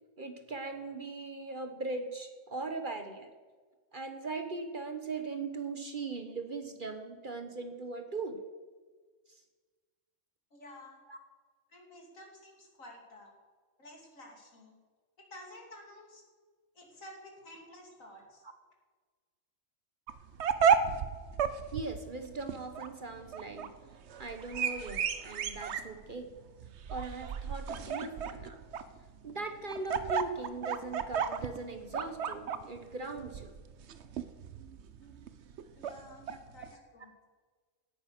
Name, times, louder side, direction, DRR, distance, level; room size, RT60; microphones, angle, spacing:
voice 1, 0.2-3.3 3.9-8.4 11.1-11.2 21.7-23.7 24.2-26.3 26.9-28.6 29.2-33.5 36.2-36.4, right 3 dB, 40° right, 6 dB, 1.2 m, -39 dB
voice 2, 10.5-11.0 11.7-13.3 13.8-14.8 15.2-16.2 16.7-18.4 35.7-37.1, left 1 dB, 75° left, 1 dB, 3.2 m, -52 dB
sound 1, 20.1-36.7, right 7 dB, 60° right, 1.0 m, -34 dB
17.0 x 10.0 x 6.1 m, 1.5 s
omnidirectional pair, 1.4 m